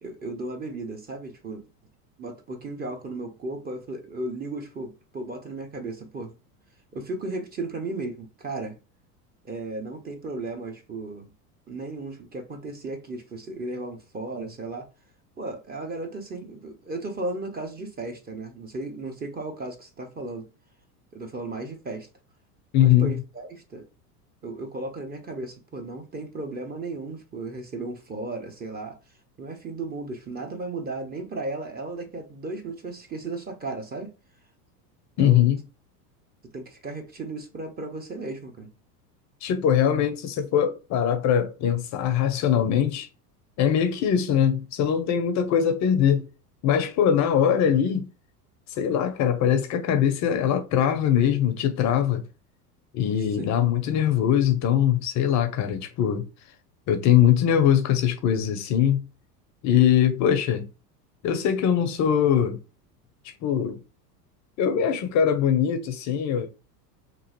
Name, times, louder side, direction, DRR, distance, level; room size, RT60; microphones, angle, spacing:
voice 1, 0.0-1.7 2.2-6.3 6.9-8.8 9.4-11.3 11.7-14.9 15.4-20.5 21.1-22.1 22.8-23.9 24.4-29.0 29.4-34.1 35.2-35.4 36.4-38.7 53.4-53.5, right 2 dB, 20° right, 0.6 m, -35 dB
voice 2, 22.7-23.1 35.2-35.6 39.4-43.1 43.6-46.2 46.6-48.1 48.7-52.2 52.9-56.3 56.9-59.0 59.6-60.7 61.2-62.6 63.2-63.8 64.6-66.5, left 9 dB, 35° left, 0.5 m, -22 dB
2.9 x 2.5 x 2.8 m
hypercardioid pair, 90°, 48 cm